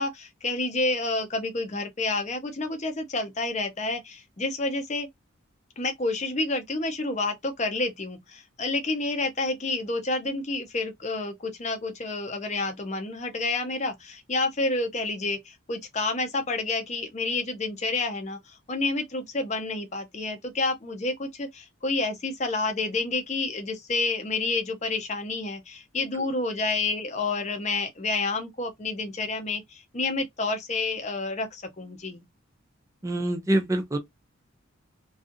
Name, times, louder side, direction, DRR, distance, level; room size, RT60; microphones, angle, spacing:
voice 1, 0.0-5.1 5.8-32.2, left 3 dB, 35° left, 0.6 m, -29 dB
voice 2, 33.0-34.0, right 1 dB, 15° right, 0.4 m, -26 dB
2.5 x 2.4 x 2.5 m
head